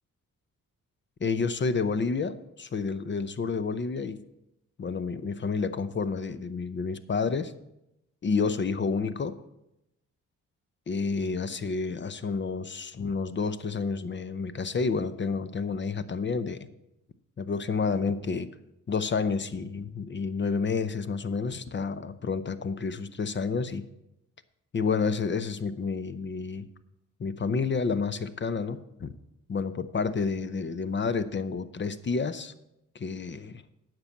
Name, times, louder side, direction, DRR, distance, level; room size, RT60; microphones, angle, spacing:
voice 1, 1.2-4.2 4.8-7.5 8.2-9.4 10.9-16.7 17.4-18.5 18.9-23.8 24.7-26.7 27.2-29.1 29.5-32.5 32.9-33.6, left 4 dB, 40° left, 13 dB, 0.7 m, -30 dB
9.7 x 6.1 x 7.2 m, 0.86 s
cardioid pair, 70°, 30 cm